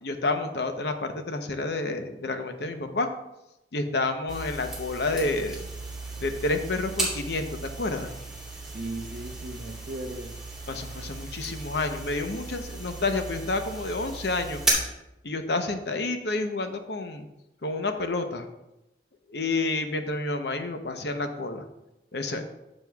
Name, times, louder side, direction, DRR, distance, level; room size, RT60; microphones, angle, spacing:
voice 1, 0.0-3.1 3.7-5.7 6.2-7.5 7.8-8.1 10.7-14.6 15.2-17.2 17.6-18.4 19.3-21.6 22.1-22.4, left 2 dB, 70° left, 7 dB, 0.8 m, -29 dB
sound 1, 4.3-14.7, right 3 dB, 5° right, 2.7 m, -35 dB
voice 2, 8.6-10.4 22.3-22.4, right 2 dB, 50° right, 5 dB, 0.8 m, -37 dB
12.0 x 7.4 x 2.3 m, 0.92 s
head